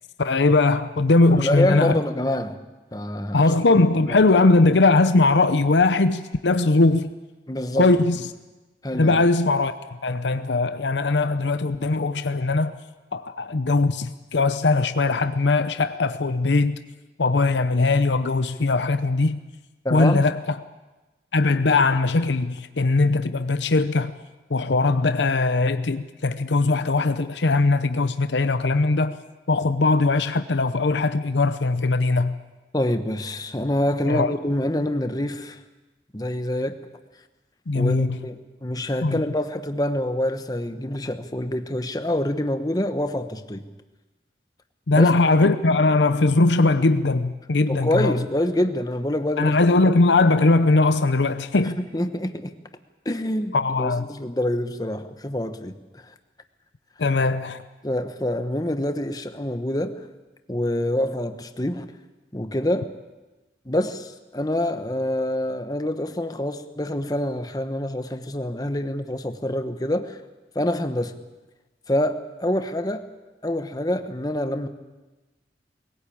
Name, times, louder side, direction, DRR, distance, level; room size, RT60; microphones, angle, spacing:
voice 1, 0.2-1.9 3.3-7.1 7.8-8.2 8.9-9.8 10.0-12.8 13.1-16.8 17.2-19.4 19.9-20.4 21.3-24.1 24.5-29.2 29.5-32.4 34.1-34.3 37.7-38.2 39.0-39.2 44.9-48.2 49.4-51.8 53.5-54.1 57.0-57.6, left 3 dB, 90° left, 0.8 m, -20 dB
voice 2, 1.2-2.6 2.9-3.5 4.0-4.2 7.5-8.0 8.8-9.3 19.8-20.2 32.7-35.6 36.1-36.8 37.7-43.6 44.9-45.1 47.7-49.6 51.6-52.5 53.0-56.1 57.8-60.1 60.5-61.9 62.3-62.9 63.6-70.2 70.5-71.1 71.9-73.0 73.4-74.7, left 1 dB, 20° left, 1.1 m, -26 dB
22.0 x 17.0 x 8.7 m
head